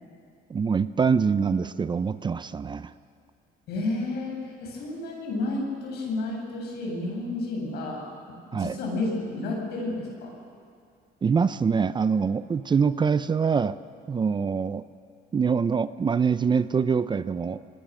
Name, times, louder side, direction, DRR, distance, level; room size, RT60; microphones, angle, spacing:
voice 1, 0.5-2.9 8.5-8.8 11.2-13.8 14.1-14.8 15.3-17.6, right 6 dB, 25° right, 14 dB, 0.6 m, -24 dB
voice 2, 3.7-8.0 8.5-10.3, left 2 dB, 75° left, -1 dB, 7.7 m, -31 dB
29.0 x 21.0 x 6.4 m, 2.3 s
cardioid pair, 110°, 17 cm